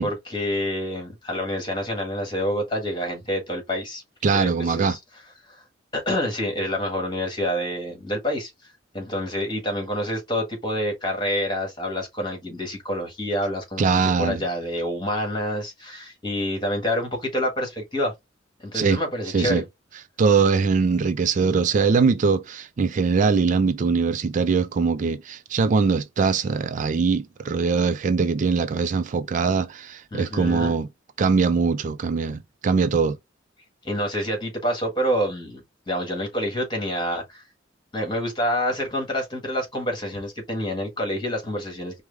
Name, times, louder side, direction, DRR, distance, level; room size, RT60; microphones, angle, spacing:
voice 1, 0.0-4.0 4.3-5.0 5.5-5.6 5.9-8.5 8.9-18.1 18.6-19.7 30.1-30.8 33.8-37.4 37.9-42.0, equal, 25° left, 1.7 m, -27 dB
voice 2, 4.2-5.0 13.8-14.4 18.7-19.0 19.3-19.6 20.2-30.9 31.2-33.2, right 5 dB, 40° right, 0.3 m, -22 dB
4.7 x 2.1 x 3.3 m
head